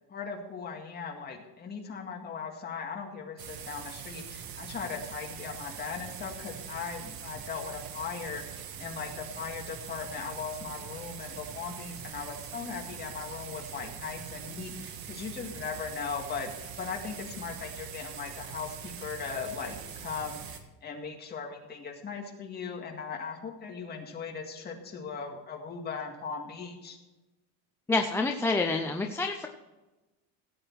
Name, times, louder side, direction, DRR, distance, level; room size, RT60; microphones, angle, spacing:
voice 1, 0.1-27.0, left 5 dB, 25° left, 1 dB, 2.0 m, -38 dB
sound 1, 3.4-20.6, right 8 dB, 65° right, 1.6 m, -43 dB
voice 2, 27.9-29.5, left 3 dB, 5° left, 3 dB, 0.4 m, -27 dB
16.5 x 8.1 x 4.6 m, 1.1 s
cardioid pair, 170°, 39 cm